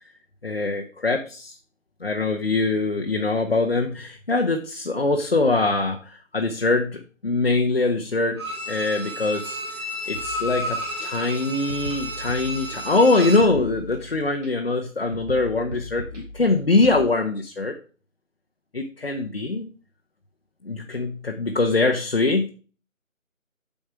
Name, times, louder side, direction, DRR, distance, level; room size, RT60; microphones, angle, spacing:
voice 1, 0.4-1.6 2.0-9.6 10.1-17.8 18.7-19.7 20.6-22.5, left 3 dB, 45° left, 2 dB, 1.0 m, -23 dB
Bowed string instrument, 8.4-13.6 13.9-14.0, equal, 20° right, 1.9 m, -32 dB
sound 1, 10.1-11.1 11.7-13.0 13.4-14.5 15.1-17.0, left 1 dB, 60° right, 3.6 m, -38 dB
8.9 x 5.2 x 4.8 m, 0.37 s
figure-of-eight pair, 160°, 41 cm